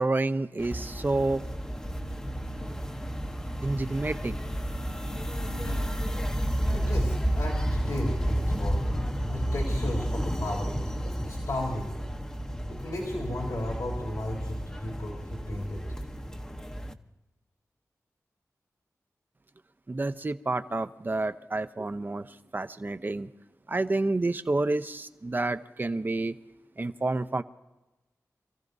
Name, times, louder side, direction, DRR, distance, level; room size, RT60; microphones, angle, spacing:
voice 1, 0.0-1.4 3.6-4.3 19.9-22.3 22.5-23.3 23.7-26.3 26.8-27.4, right 2 dB, 35° right, 11 dB, 0.7 m, -29 dB
sound 1, 0.6-16.9, equal, 10° left, 0.9 m, -31 dB
voice 2, 6.7-8.8 9.2-11.9 12.7-15.8, left 1 dB, 85° left, -3 dB, 3.4 m, -35 dB
27.0 x 15.0 x 2.7 m, 1.1 s
wide cardioid pair, 90°, 6 cm